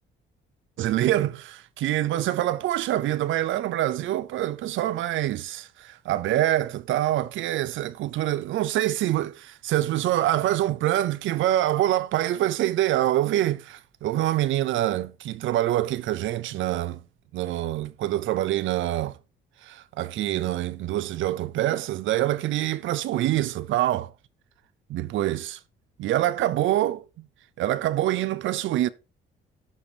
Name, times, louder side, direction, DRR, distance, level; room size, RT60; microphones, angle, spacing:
voice 1, 0.8-17.0 17.3-19.2 19.6-24.1 24.9-25.6 26.0-27.0 27.6-28.9, right 14 dB, 80° right, 0.5 m, -25 dB
14.0 x 4.9 x 2.7 m
cardioid pair, 90°, 20 cm